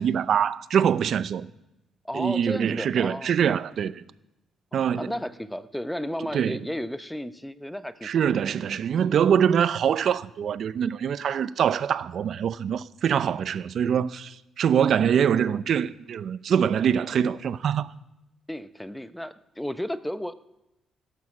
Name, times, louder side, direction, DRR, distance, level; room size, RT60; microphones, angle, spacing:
voice 1, 0.0-1.5 2.1-4.0 4.7-5.1 6.3-6.6 8.0-17.9, right 8 dB, 60° right, 0.7 m, -24 dB
voice 2, 2.0-3.3 4.7-8.1 18.5-20.4, left 1 dB, 5° left, 0.9 m, -33 dB
17.0 x 11.5 x 7.4 m
cardioid pair, 90°, 0 cm